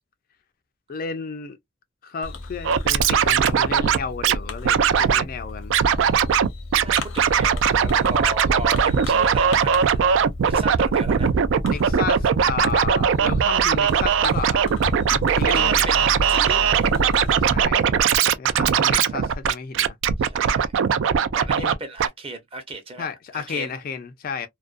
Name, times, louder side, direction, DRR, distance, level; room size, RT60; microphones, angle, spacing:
voice 1, 0.9-1.6 2.0-5.7 11.7-14.6 15.3-15.9 17.3-17.9 18.4-20.0 21.6-21.7 23.0-24.5, left 5 dB, 45° left, 0.3 m, -32 dB
Fireworks, 2.2-17.6, left 2 dB, 80° left, 0.7 m, -34 dB
Scratching (performance technique), 2.6-4.4 4.6-5.2 5.7-6.5 6.7-21.7 22.0-22.1, right 7 dB, 70° right, 0.3 m, -20 dB
voice 2, 6.8-10.1 10.4-11.3 15.5-16.9 19.0-19.2 20.2-20.7 21.3-23.8, right 2 dB, 30° right, 0.7 m, -36 dB
2.4 x 2.2 x 2.3 m
head